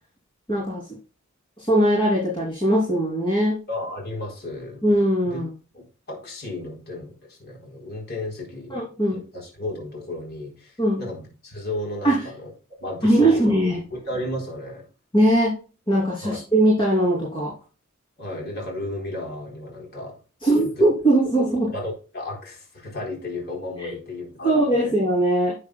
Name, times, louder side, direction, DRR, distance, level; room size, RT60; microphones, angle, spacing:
voice 1, 0.5-0.8 1.6-3.6 4.8-5.5 8.7-9.2 10.8-11.0 12.0-12.2 13.0-13.8 15.1-15.6 15.9-17.5 20.4-21.7 23.8-23.9 24.4-25.5, right 1 dB, 25° left, -4 dB, 3.2 m, -20 dB
voice 2, 3.7-4.8 5.2-5.4 5.7-12.5 12.8-13.5 13.9-14.9 16.2-16.4 18.2-20.2 20.6-20.9 21.2-21.3 21.7-24.9, left 1 dB, 50° left, 1 dB, 4.1 m, -34 dB
11.5 x 8.2 x 2.3 m, 0.34 s
head